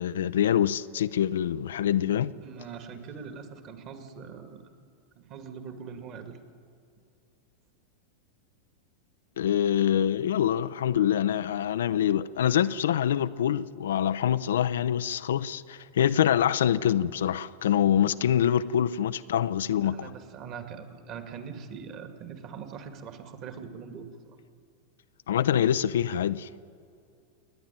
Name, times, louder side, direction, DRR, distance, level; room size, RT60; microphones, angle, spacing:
voice 1, 0.0-2.3 9.4-20.1 25.3-26.5, left 10 dB, 60° left, 0.5 m, -25 dB
voice 2, 2.4-4.7 5.2-6.4 18.4-18.5 19.8-24.4, right 6 dB, 35° right, 2.3 m, -42 dB
28.5 x 10.5 x 9.5 m
figure-of-eight pair, 90°, 0 cm